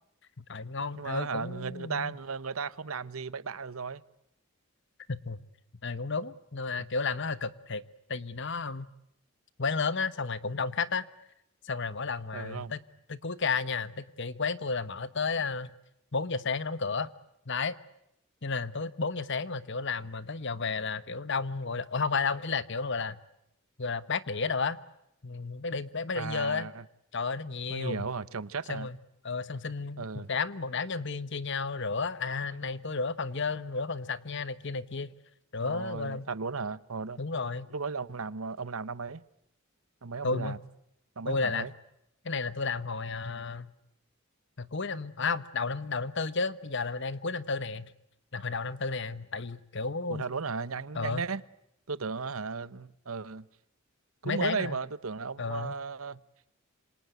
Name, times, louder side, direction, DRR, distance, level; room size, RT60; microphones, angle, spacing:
voice 1, 0.4-2.1 5.1-5.4 5.8-7.8 8.1-8.9 9.6-11.1 11.6-12.8 13.1-15.7 16.1-17.1 17.5-17.8 18.4-23.2 23.8-24.8 25.2-26.7 27.1-28.1 28.7-29.0 29.2-35.1 35.5-36.3 37.2-37.7 40.2-40.6 41.3-41.7 42.2-43.7 44.6-47.9 48.3-50.2 50.9-51.2 54.2-54.8 55.4-55.8, left 4 dB, 60° left, 1.2 m, -32 dB
voice 2, 1.0-4.0 6.7-6.9 12.3-12.7 26.1-26.8 27.7-28.9 30.0-30.3 35.6-37.2 37.7-39.2 40.0-40.6 41.2-41.7 50.1-51.4 51.9-53.5 54.2-56.2, right 4 dB, 90° right, 1.0 m, -35 dB
27.5 x 26.5 x 7.9 m
head